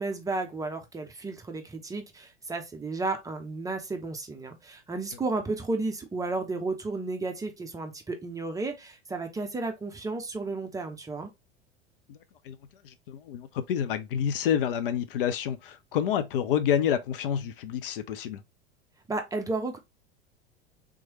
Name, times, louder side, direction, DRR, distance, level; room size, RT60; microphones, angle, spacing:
voice 1, 0.0-11.3 19.1-19.8, right 3 dB, 10° right, 0.6 m, -33 dB
voice 2, 12.8-18.4, left 9 dB, 55° left, 0.5 m, -28 dB
3.5 x 3.1 x 3.0 m
figure-of-eight pair, 80°, 33 cm